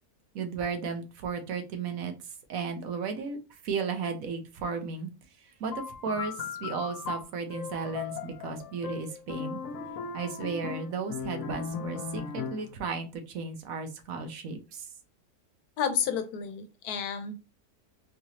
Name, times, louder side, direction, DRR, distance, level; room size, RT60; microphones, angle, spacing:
voice 1, 0.3-2.1 2.5-3.4 3.6-5.1 5.6-9.6 10.1-14.9, right 5 dB, 70° right, 6 dB, 1.1 m, -34 dB
sound 1, 5.7-12.8, left 6 dB, 70° left, 0.9 m, -38 dB
voice 2, 15.8-17.4, left 7 dB, 90° left, 9 dB, 1.2 m, -31 dB
3.9 x 2.8 x 2.8 m, 0.30 s
omnidirectional pair, 1.6 m